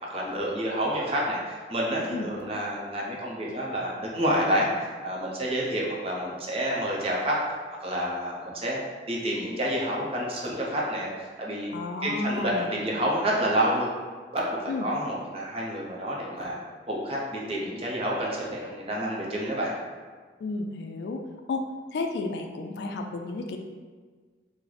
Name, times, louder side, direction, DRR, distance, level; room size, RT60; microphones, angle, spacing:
voice 1, 0.0-7.6 7.8-8.8 9.1-11.7 12.0-13.9 14.3-16.6 16.9-19.7, equal, 35° right, -3 dB, 0.5 m, -29 dB
voice 2, 11.7-12.7 14.7-14.9 20.4-21.2 21.5-23.6, left 3 dB, 75° left, 4 dB, 0.3 m, -32 dB
3.0 x 2.0 x 3.8 m, 1.5 s
head